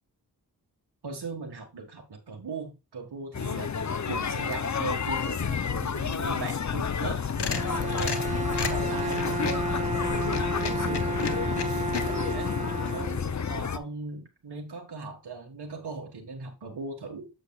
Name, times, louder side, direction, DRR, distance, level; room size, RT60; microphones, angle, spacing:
voice 1, 1.0-8.2 8.6-9.7 10.7-12.5 12.9-17.3, right 3 dB, 75° right, 1 dB, 1.7 m, -39 dB
sound 1, 3.3-13.8, left 6 dB, 45° left, 0.7 m, -30 dB
sound 2, 7.1-9.7 10.2-12.0, left 5 dB, 80° left, 1.3 m, -33 dB
Bowed string instrument, 7.5-13.6, right 2 dB, 20° right, 0.7 m, -32 dB
8.0 x 7.8 x 2.4 m, 0.26 s
cardioid pair, 50°, 40 cm